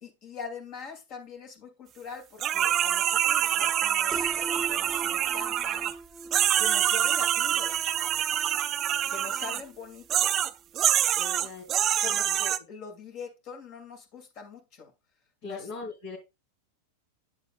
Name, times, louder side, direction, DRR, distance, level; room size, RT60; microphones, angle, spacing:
voice 1, 0.0-5.9 6.6-7.9 9.1-10.4 11.2-11.5 12.0-14.9 15.4-15.7, left 5 dB, 50° left, 4 dB, 2.4 m, -43 dB
sound 1, 2.4-5.9 6.3-9.6 10.1-12.6, right 11 dB, 35° right, 0.4 m, -26 dB
Piano, 4.1-10.0, right 1 dB, 10° right, 0.9 m, -42 dB
voice 2, 11.3-11.6 12.1-12.4 15.4-16.2, left 4 dB, 65° left, -4 dB, 2.9 m, -40 dB
8.1 x 7.7 x 2.3 m, 0.23 s
hypercardioid pair, 100°, 0 cm